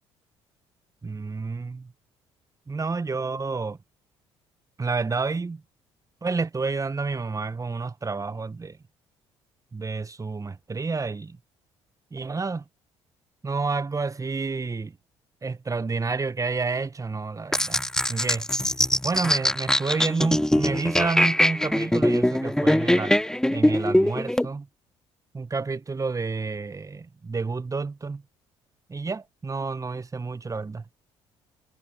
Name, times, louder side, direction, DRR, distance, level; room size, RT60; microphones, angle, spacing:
voice 1, 1.0-1.9 2.7-3.8 4.8-5.6 6.2-8.8 9.7-11.4 12.1-12.6 13.4-15.0 15.4-17.8 18.1-18.5 19.0-23.2 23.5-24.7 25.3-28.2 28.9-30.8, right 4 dB, 25° right, 1.6 m, -29 dB
sound 1, 17.5-24.5, left 1 dB, 5° left, 1.2 m, -22 dB
figure-of-eight pair, 50°, 14 cm